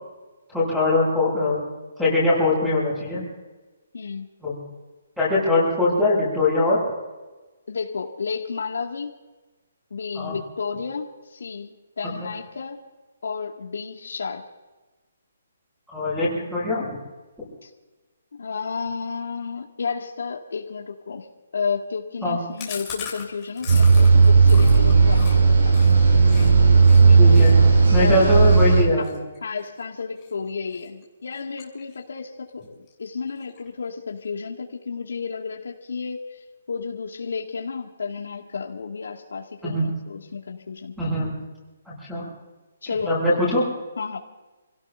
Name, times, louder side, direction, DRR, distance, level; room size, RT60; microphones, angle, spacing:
voice 1, 0.5-1.6 2.0-3.2 4.4-4.6 5.2-6.8 10.1-10.4 12.0-12.1 15.9-16.9 22.2-22.4 27.1-27.6 27.9-29.2 39.6-39.9 41.0-41.4 41.9-42.2 43.0-43.6, left 2 dB, ahead, -7 dB, 7.2 m, -22 dB
voice 2, 3.9-4.3 7.7-9.1 9.9-12.8 13.2-14.4 17.6-17.7 18.4-21.3 21.5-26.2 28.0-28.3 29.4-36.4 36.7-41.0 42.8-43.1 44.0-44.2, left 5 dB, 75° left, 1 dB, 2.4 m, -32 dB
Chewing mastication, 22.6-26.5 26.8-27.0 27.3-30.3 30.7-31.0 31.3-32.2 32.5-32.6 32.9-33.0 33.3-33.9, left 7 dB, 15° left, 3.1 m, -39 dB
sound 1, 23.7-28.8, right 4 dB, 65° right, 5.5 m, -14 dB
29.0 x 17.5 x 2.8 m, 1.2 s
hypercardioid pair, 180°, 0 cm